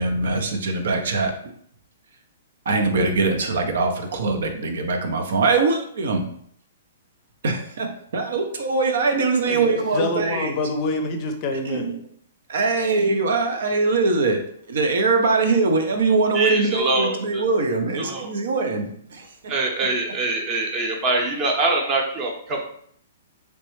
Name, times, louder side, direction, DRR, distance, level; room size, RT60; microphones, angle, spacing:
voice 1, 0.0-1.5 2.7-6.2 7.4-10.6 11.6-12.0 12.5-14.4 14.7-19.3, right 3 dB, 70° right, 4 dB, 0.6 m, -22 dB
voice 2, 9.4-11.8, left 2 dB, 35° left, 5 dB, 0.5 m, -27 dB
voice 3, 16.3-17.4 18.0-18.3 19.5-22.6, right 2 dB, 25° right, 1 dB, 0.8 m, -24 dB
3.2 x 3.0 x 3.1 m, 0.63 s
hypercardioid pair, 150°, 0 cm